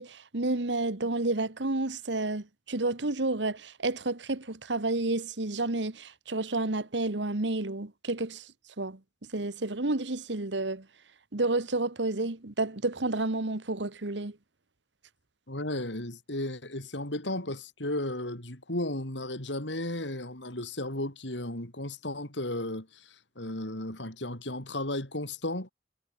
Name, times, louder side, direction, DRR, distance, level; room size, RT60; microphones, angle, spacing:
voice 1, 0.0-8.5 8.8-9.0 9.3-10.8 11.3-14.4, right 2 dB, 75° right, 1.5 m, -30 dB
voice 2, 15.5-25.7, left 1 dB, 75° left, 6.3 m, -34 dB
head